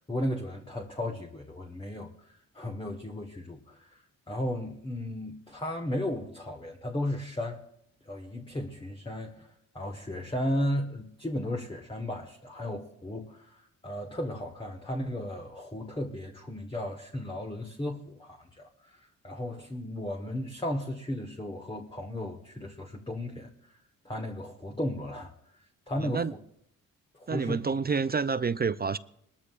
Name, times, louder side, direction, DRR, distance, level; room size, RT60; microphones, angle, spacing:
voice 1, 0.1-7.6 8.0-23.5 24.0-25.3 25.9-26.4 27.1-27.6, left 1 dB, 15° left, 1.5 m, -35 dB
voice 2, 26.0-26.3 27.3-29.0, right 5 dB, 25° right, 0.5 m, -28 dB
20.0 x 13.5 x 2.5 m
cardioid pair, 60°, 35 cm